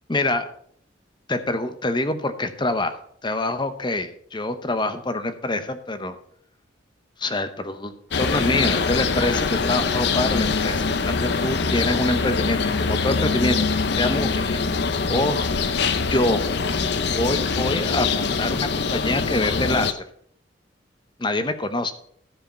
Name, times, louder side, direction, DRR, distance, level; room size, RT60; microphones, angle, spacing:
voice 1, 0.1-0.5 1.3-6.2 7.2-13.6 13.9-14.6 15.1-15.4 16.1-16.4 17.1-20.0 21.2-21.9, left 2 dB, 25° left, 9 dB, 0.8 m, -25 dB
sound 1, 8.1-19.9, left 4 dB, 55° left, 0.6 m, -23 dB
sound 2, 8.1-12.5 14.4-14.5 14.7-14.8 15.7-15.8 18.2-18.3 18.9-19.0 19.5-19.6, equal, 75° right, 2.0 m, -42 dB
13.5 x 4.9 x 5.5 m, 0.63 s
head